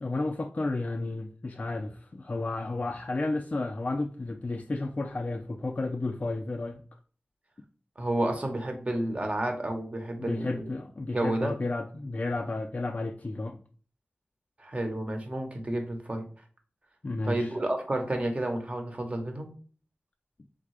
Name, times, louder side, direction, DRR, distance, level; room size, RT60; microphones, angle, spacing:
voice 1, 0.0-6.8 10.2-13.6 17.0-17.5, left 2 dB, 40° left, 0.3 m, -32 dB
voice 2, 8.0-10.7 11.1-11.5 14.6-16.2 17.2-19.5, right 1 dB, 35° right, 1.0 m, -30 dB
3.7 x 3.6 x 3.2 m
wide cardioid pair, 75°, 4 cm